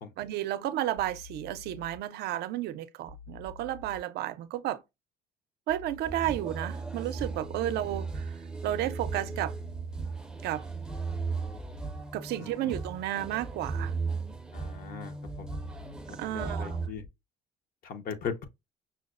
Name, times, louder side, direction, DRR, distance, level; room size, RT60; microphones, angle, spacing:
voice 1, 0.2-4.8 5.7-8.3 8.6-9.5 10.4-10.7 12.1-13.9 16.2-16.8, right 13 dB, 75° right, 0.5 m, -32 dB
sound 1, 1.0-2.0 3.1-4.0 5.7-6.0 7.3-8.0 8.7-10.0 11.1-12.0 13.7-14.0 15.3-16.0 16.7-17.1, left 4 dB, 90° left, 1.4 m, -48 dB
sound 2, 6.0-16.9, right 4 dB, 5° right, 0.5 m, -36 dB
voice 2, 12.4-12.7 14.5-15.5 16.3-17.0 17.8-18.4, left 6 dB, 60° left, 0.8 m, -39 dB
5.6 x 2.0 x 2.4 m
cardioid pair, 110°, 17 cm